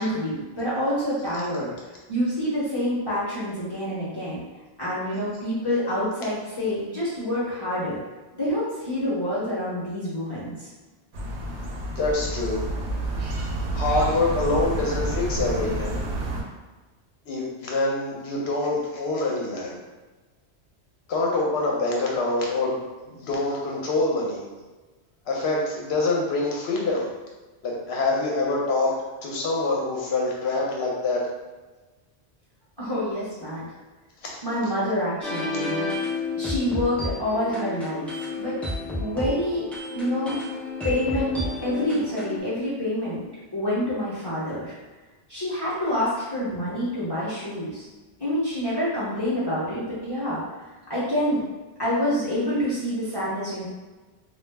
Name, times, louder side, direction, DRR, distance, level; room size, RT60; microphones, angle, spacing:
voice 1, 0.0-1.7 2.1-4.4 4.8-8.0 8.3-10.7 32.8-33.6 34.4-35.9 36.4-38.5 38.9-39.6 39.9-40.4 40.8-43.2 43.5-44.7 45.3-47.9 48.2-50.4 50.9-51.4 51.8-53.7, left 1 dB, 25° left, -10 dB, 0.7 m, -27 dB
sound 1, 11.1-16.4, right 2 dB, 80° right, 0.8 m, -29 dB
voice 2, 12.0-12.6 13.7-16.0 17.3-19.8 21.1-22.8 23.1-24.4 25.3-27.1 27.6-28.9 29.2-31.2 34.2-34.3, left 2 dB, 70° left, -2 dB, 0.9 m, -25 dB
sound 2, 35.2-42.4, left 3 dB, ahead, 0.4 m, -31 dB
2.3 x 2.0 x 3.3 m, 1.2 s
omnidirectional pair, 1.1 m